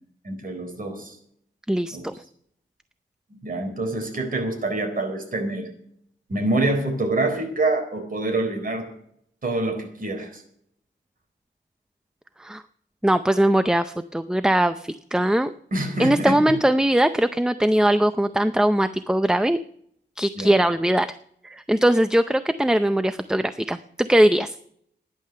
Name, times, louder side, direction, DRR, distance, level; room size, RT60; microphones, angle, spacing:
voice 1, 0.2-1.2 1.9-2.1 3.3-5.7 6.3-8.9 9.4-10.4 15.7-16.4 20.4-20.6, right 2 dB, 45° right, 4 dB, 4.3 m, -26 dB
voice 2, 1.7-2.1 12.4-12.6 13.0-15.5 16.0-19.6 20.2-21.1 21.4-24.5, right 1 dB, 5° right, 11 dB, 0.5 m, -20 dB
14.5 x 10.5 x 6.7 m, 0.67 s
wide cardioid pair, 125°, 20 cm